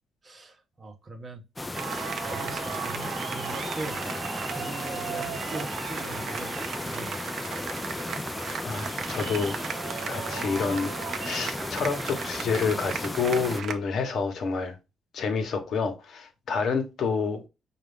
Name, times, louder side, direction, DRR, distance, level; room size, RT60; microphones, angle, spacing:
voice 1, 0.2-1.4 1.9-4.0 4.5-6.5 6.8-7.4, right 2 dB, 35° right, 0.8 m, -41 dB
sound 1, 1.6-13.6, left 2 dB, 15° left, 0.3 m, -35 dB
sound 2, 1.7-13.7, right 7 dB, 65° right, 0.5 m, -36 dB
voice 2, 8.6-9.6 10.1-10.9 11.2-14.7 15.1-17.5, left 5 dB, 65° left, 0.9 m, -28 dB
5.1 x 2.4 x 3.4 m
cardioid pair, 90°, 0 cm